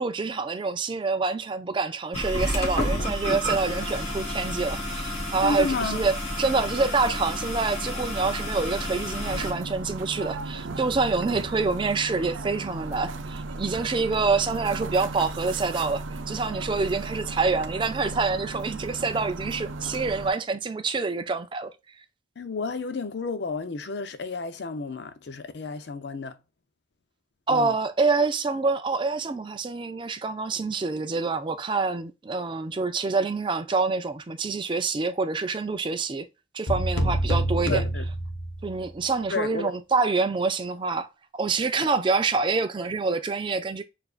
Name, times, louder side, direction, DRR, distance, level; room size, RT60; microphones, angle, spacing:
voice 1, 0.0-21.7 27.5-36.3 36.5-37.8 38.6-41.1 41.3-43.8, right 4 dB, 25° right, 0.3 m, -26 dB
sound 1, 2.1-9.5, equal, 35° left, 1.3 m, -30 dB
voice 2, 5.4-6.0 22.4-26.4 27.5-27.7 37.7-38.0 39.3-39.7, left 4 dB, 60° left, 0.5 m, -31 dB
sound 2, 9.2-20.3, right 3 dB, 80° right, 0.5 m, -35 dB
sound 3, 36.7-38.9, right 1 dB, 90° left, 0.9 m, -27 dB
6.8 x 2.5 x 2.3 m
head